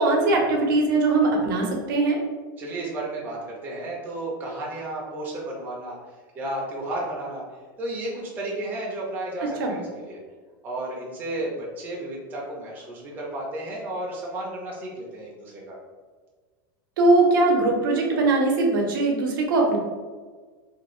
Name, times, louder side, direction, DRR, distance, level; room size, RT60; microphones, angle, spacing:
voice 1, 0.0-2.2 9.6-9.8 17.0-19.8, right 2 dB, 80° right, 1 dB, 0.7 m, -21 dB
voice 2, 2.6-6.0 6.3-7.4 7.8-10.2 10.6-15.8, right 1 dB, 15° right, -3 dB, 0.4 m, -33 dB
2.5 x 2.2 x 3.0 m, 1.4 s
supercardioid pair, 170°, 11 cm